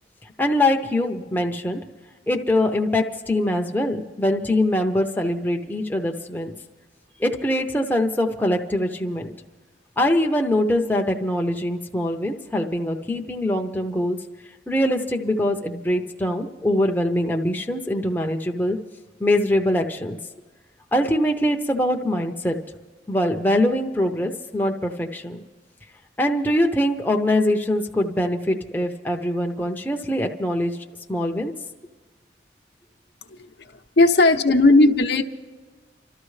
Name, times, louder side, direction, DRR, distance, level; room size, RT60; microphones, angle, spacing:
voice 1, 0.4-1.8 2.3-6.5 7.2-9.3 10.0-14.2 14.7-18.8 19.2-20.2 20.9-22.6 23.1-25.4 26.2-30.8 31.1-31.5, left 1 dB, 10° left, 2 dB, 0.6 m, -23 dB
voice 2, 34.0-35.2, left 2 dB, 65° left, 4 dB, 0.8 m, -15 dB
29.0 x 13.0 x 3.2 m, 1.3 s
head